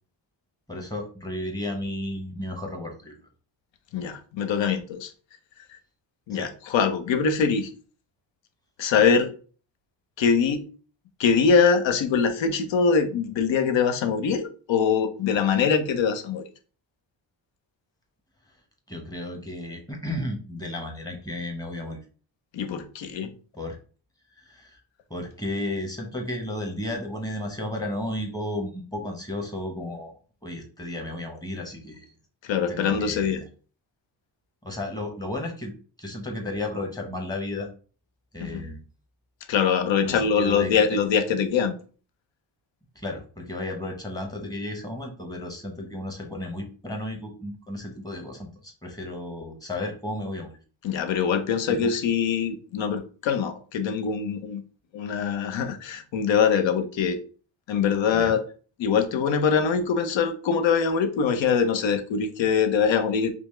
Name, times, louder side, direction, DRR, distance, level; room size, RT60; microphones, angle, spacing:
voice 1, 0.7-3.2 6.3-6.5 18.9-22.0 23.5-23.8 24.4-24.8 25.1-30.1 30.4-32.1 32.7-33.5 34.6-35.7 36.0-37.7 38.3-38.8 40.0-41.0 42.9-50.6 51.7-51.9 58.1-58.3, left 1 dB, 10° left, 0.9 m, -33 dB
voice 2, 3.9-5.1 6.3-7.7 8.8-9.3 10.2-10.6 11.2-16.4 22.5-23.3 32.4-33.4 38.4-38.6 39.5-41.7 50.8-54.6 54.9-57.2 57.7-58.4 58.8-63.3, left 6 dB, 85° left, 0.7 m, -23 dB
5.1 x 2.0 x 3.1 m
wide cardioid pair, 120°, 44 cm